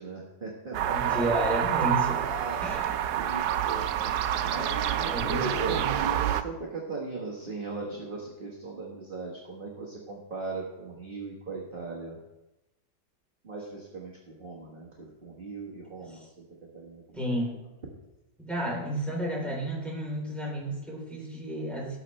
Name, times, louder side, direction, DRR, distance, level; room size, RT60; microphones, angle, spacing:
voice 1, 0.0-1.4 1.8-3.9 4.4-12.2 13.4-17.2, right 3 dB, 30° right, -3 dB, 1.6 m, -38 dB
sound 1, 0.7-6.4, right 11 dB, 70° right, 1.1 m, -28 dB
voice 2, 0.9-2.3 2.6-2.9 5.1-5.9 16.0-16.1 17.1-17.7 18.4-22.0, right 1 dB, ahead, -4 dB, 3.4 m, -32 dB
18.5 x 6.7 x 3.2 m, 0.96 s
omnidirectional pair, 1.9 m